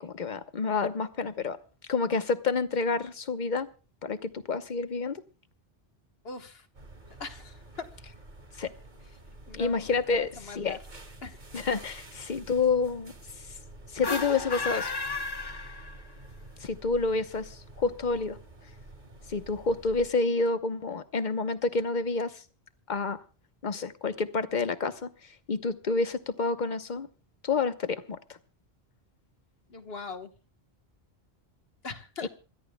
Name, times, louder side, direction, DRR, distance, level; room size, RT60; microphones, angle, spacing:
voice 1, 0.0-1.6 1.9-3.7 4.0-5.2 8.6-8.7 9.5-10.8 11.5-13.1 13.9-14.9 16.6-18.4 19.3-22.4 22.9-23.2 23.6-25.1 25.5-27.1 27.4-28.2, left 4 dB, 45° left, 11 dB, 1.1 m, -29 dB
voice 2, 6.2-6.7 7.2-7.9 9.5-10.8 11.2-11.4 29.7-30.3 31.8-32.3, left 4 dB, 65° left, 7 dB, 1.6 m, -41 dB
sound 1, 6.7-20.1, right 2 dB, 45° right, 1.9 m, -49 dB
sound 2, 13.9-16.3, left 3 dB, 25° left, 0.7 m, -34 dB
27.0 x 13.5 x 2.3 m, 0.36 s
omnidirectional pair, 1.1 m